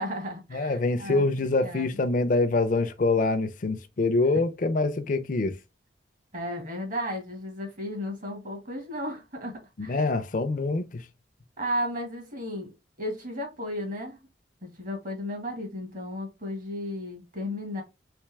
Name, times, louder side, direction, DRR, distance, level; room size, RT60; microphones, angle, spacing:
voice 1, 0.0-1.3 1.6-1.9 6.3-10.0 11.6-12.7 13.0-14.2 14.6-17.8, equal, 45° right, 1.4 m, -34 dB
voice 2, 0.5-5.6 9.8-11.1, left 3 dB, 45° left, 0.5 m, -25 dB
3.4 x 3.1 x 3.2 m
head